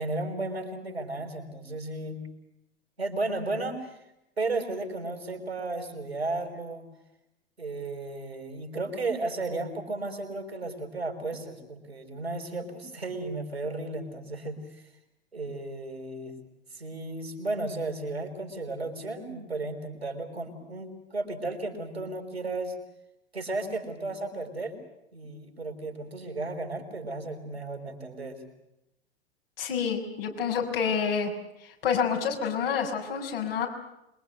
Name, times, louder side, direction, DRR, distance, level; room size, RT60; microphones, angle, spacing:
voice 1, 0.0-2.2 3.0-4.0 4.4-6.9 7.6-14.9 15.3-16.4 16.7-22.8 23.3-24.8 25.1-28.4, right 2 dB, 85° right, 5 dB, 5.6 m, -34 dB
voice 2, 29.6-31.3 31.8-33.7, left 6 dB, 65° left, 2 dB, 6.2 m, -28 dB
27.0 x 23.5 x 8.0 m, 0.86 s
figure-of-eight pair, 85°, 31 cm